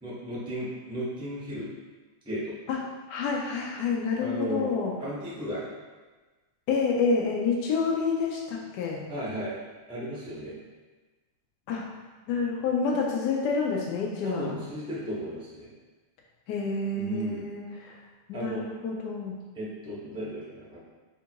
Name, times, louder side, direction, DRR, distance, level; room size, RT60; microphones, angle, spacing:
voice 1, 0.0-1.7 2.2-2.5 4.2-4.7 5.0-5.6 9.1-9.6 9.9-10.6 14.2-15.7 17.0-17.5 18.3-18.7 19.5-20.8, equal, 5° right, -9 dB, 0.5 m, -34 dB
voice 2, 3.1-4.9 6.7-9.0 11.7-11.9 12.3-14.6 16.5-18.0 18.3-19.3, left 4 dB, 85° left, -1 dB, 0.9 m, -28 dB
3.5 x 2.6 x 4.4 m, 1.3 s
omnidirectional pair, 2.4 m